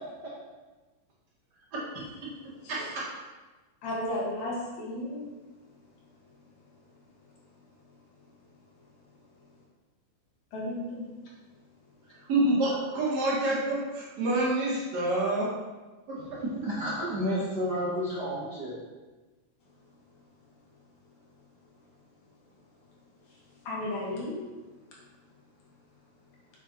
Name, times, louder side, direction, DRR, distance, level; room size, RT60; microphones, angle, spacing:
voice 1, 1.9-2.9 3.8-5.3 5.6-9.1 9.4-9.6 10.5-11.6 12.1-12.2 19.6-20.2 21.3-21.8 23.2-24.5 25.6-25.7 26.2-26.4, left 1 dB, 65° left, -4 dB, 2.8 m, -39 dB
voice 2, 2.7-3.0 12.3-15.5, right 2 dB, 60° right, -6 dB, 2.9 m, -27 dB
voice 3, 16.2-18.8, equal, 75° right, -7 dB, 0.9 m, -31 dB
8.0 x 7.5 x 3.0 m, 1.2 s
omnidirectional pair, 3.7 m